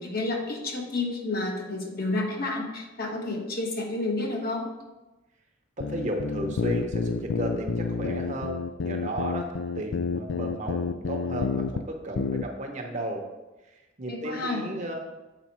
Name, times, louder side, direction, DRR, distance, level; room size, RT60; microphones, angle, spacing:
voice 1, 0.0-4.6 14.1-14.6, left 2 dB, 50° left, 1 dB, 1.1 m, -30 dB
sound 1, 5.8-11.8 12.2-12.4, left 5 dB, 70° left, 0.4 m, -29 dB
voice 2, 5.8-13.2 13.7-14.9, right 1 dB, 40° right, 2 dB, 0.9 m, -34 dB
7.2 x 4.8 x 4.4 m, 1.1 s
head